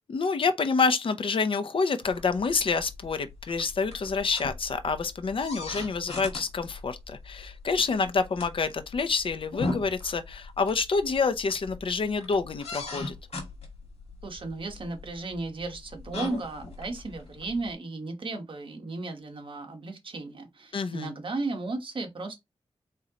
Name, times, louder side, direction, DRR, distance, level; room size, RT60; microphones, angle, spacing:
voice 1, 0.1-13.1 20.7-21.1, left 4 dB, 55° left, 0.7 m, -27 dB
sound 1, 2.0-17.7, left 3 dB, 75° left, 1.8 m, -40 dB
voice 2, 14.2-22.4, right 3 dB, 55° right, 1.2 m, -35 dB
4.3 x 3.7 x 2.9 m
wide cardioid pair, 140°, 11 cm